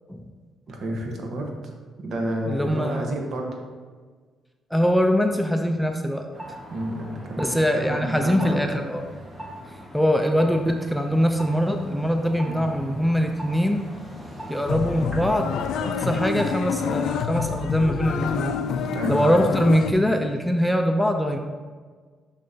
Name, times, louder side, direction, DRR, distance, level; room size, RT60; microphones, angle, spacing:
voice 1, 0.7-1.7 2.0-3.6 6.7-8.6 12.4-12.6 18.9-19.4, right 1 dB, 60° right, 2 dB, 1.1 m, -30 dB
voice 2, 2.5-3.1 4.7-6.3 7.4-9.0 9.9-13.8 14.5-18.6 19.1-21.4, equal, ahead, 4 dB, 0.4 m, -22 dB
sound 1, 6.3-17.7, equal, 20° right, 1.4 m, -40 dB
sound 2, 14.7-19.9, left 7 dB, 80° left, 0.3 m, -27 dB
6.3 x 5.6 x 2.7 m, 1.5 s
cardioid pair, 90°, 0 cm